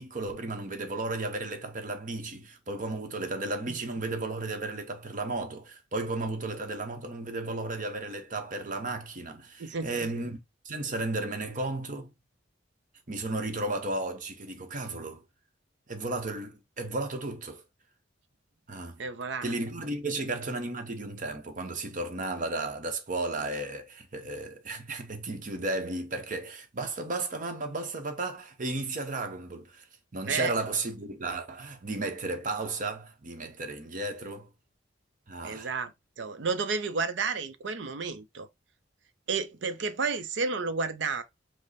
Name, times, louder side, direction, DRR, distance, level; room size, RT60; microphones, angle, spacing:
voice 1, 0.0-10.4 10.6-12.1 13.1-15.2 15.9-17.6 18.7-19.0 19.4-29.9 30.1-34.5 35.3-35.7, right 2 dB, 45° right, 0.9 m, -34 dB
voice 2, 9.6-10.1 19.0-19.5 30.2-30.5 35.4-35.9 36.2-38.5 39.3-41.2, right 4 dB, 65° right, 0.6 m, -31 dB
5.2 x 2.1 x 4.1 m
head